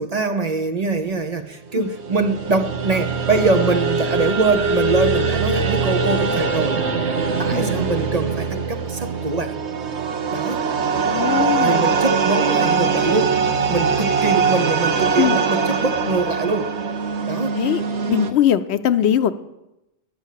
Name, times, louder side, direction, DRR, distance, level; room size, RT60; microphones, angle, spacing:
voice 1, 0.0-6.8 7.4-9.5 10.3-10.6 11.6-16.8 17.3-17.6, right 3 dB, 40° right, 7 dB, 0.8 m, -23 dB
sound 1, 1.8-18.3, right 5 dB, 85° right, 1.2 m, -22 dB
voice 2, 11.1-12.0 15.2-15.4 17.5-17.8 18.1-19.3, left 10 dB, 80° left, 12 dB, 0.9 m, -20 dB
11.0 x 6.2 x 8.2 m, 0.92 s
omnidirectional pair, 1.1 m